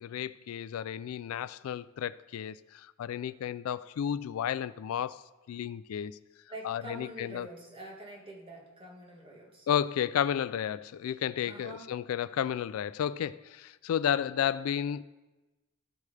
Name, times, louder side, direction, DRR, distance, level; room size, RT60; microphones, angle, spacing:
voice 1, 0.0-5.2 5.5-6.1 6.6-7.5 9.7-15.0, left 9 dB, 75° left, 0.3 m, -32 dB
voice 2, 6.5-9.7 11.4-11.9, right 1 dB, 25° right, 1.6 m, -46 dB
14.5 x 8.4 x 3.3 m
head